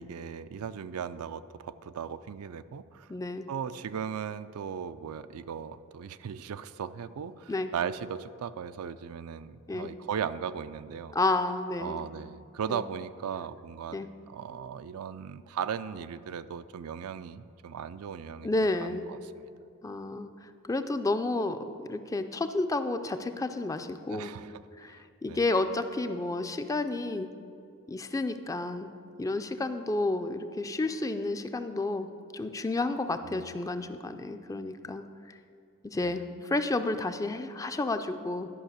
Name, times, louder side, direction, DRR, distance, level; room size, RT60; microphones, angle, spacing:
voice 1, 0.0-3.1 3.5-11.2 11.8-14.0 14.3-18.5 18.8-19.5 24.1-25.4 33.2-33.5 36.0-36.1, right 7 dB, 75° right, 13 dB, 0.4 m, -37 dB
voice 2, 3.1-3.5 7.5-7.7 9.7-9.9 11.1-12.0 12.7-12.8 13.9-14.1 18.4-19.0 19.8-24.3 24.8-27.3 27.9-28.9 29.2-35.0 35.8-38.5, left 2 dB, 15° left, 9 dB, 0.4 m, -31 dB
11.5 x 5.5 x 6.6 m, 2.4 s
head